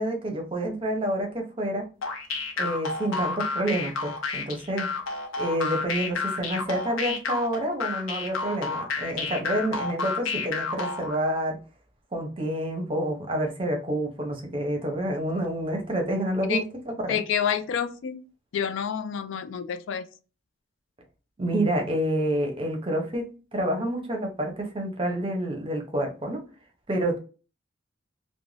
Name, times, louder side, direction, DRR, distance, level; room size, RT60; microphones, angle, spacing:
voice 1, 0.0-1.9 2.6-4.9 5.4-11.6 12.1-17.2 21.4-23.3 23.5-26.4 26.9-27.2, right 1 dB, 25° right, 2 dB, 0.6 m, -28 dB
sound 1, 2.0-11.2, left 4 dB, 90° left, 0.7 m, -30 dB
voice 2, 17.1-18.2 18.5-20.1, left 8 dB, 70° left, 11 dB, 0.3 m, -28 dB
2.4 x 2.1 x 3.1 m, 0.35 s
head